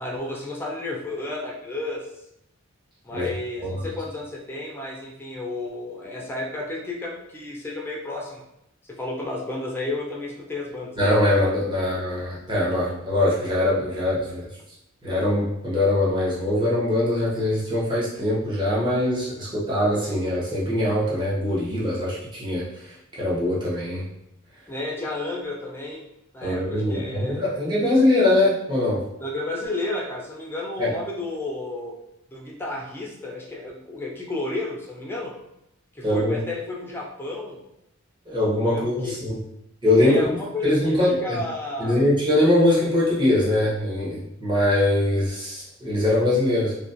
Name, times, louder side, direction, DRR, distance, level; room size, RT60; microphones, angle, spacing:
voice 1, 0.0-2.0 3.0-8.4 8.9-10.9 24.7-26.1 26.3-27.5 29.2-31.9 32.3-35.3 36.0-37.6 38.6-39.2 40.0-42.0, left 2 dB, 10° left, -2 dB, 0.4 m, -32 dB
voice 2, 11.0-14.5 15.0-24.0 26.4-29.0 30.8-30.9 36.0-36.4 38.3-39.4 39.8-40.2 40.6-41.4 41.8-46.7, left 1 dB, 20° right, -7 dB, 0.7 m, -22 dB
2.3 x 2.2 x 2.5 m, 0.82 s
head